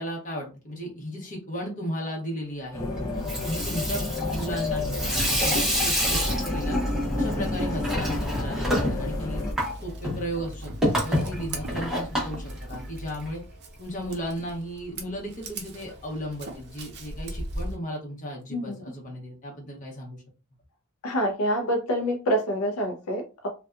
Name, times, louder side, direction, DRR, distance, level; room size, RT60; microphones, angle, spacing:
voice 1, 0.0-2.9 3.1-4.0 4.3-6.8 7.1-9.4 9.8-13.4 13.8-20.2, equal, 35° left, -2 dB, 1.0 m, -35 dB
sound 1, 2.7-9.5, left 2 dB, 15° left, 0.5 m, -31 dB
Water tap faucet / Sink (filling or washing), 3.1-13.3, equal, 5° right, 0.8 m, -28 dB
Scissors, 9.6-17.8, right 2 dB, 50° right, 0.5 m, -40 dB
voice 2, 21.0-23.5, equal, 75° left, 2 dB, 0.5 m, -26 dB
2.6 x 2.2 x 2.3 m, 0.32 s
head